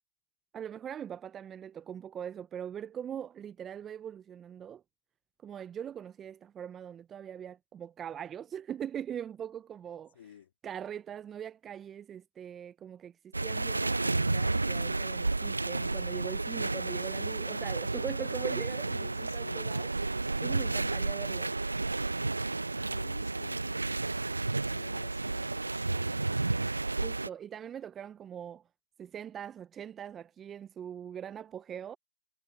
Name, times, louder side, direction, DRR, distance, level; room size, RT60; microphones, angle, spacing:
voice 1, 0.5-4.8 5.4-10.2 10.6-19.9 20.4-21.5 27.0-28.6 29.0-32.0, right 9 dB, 10° right, 0.4 m, -41 dB
voice 2, 10.1-10.5 18.9-19.8 22.7-26.7, left 9 dB, 40° left, 3.0 m, -52 dB
sound 1, 13.3-27.3, right 2 dB, 85° right, 0.5 m, -32 dB
figure-of-eight pair, 155°, 0 cm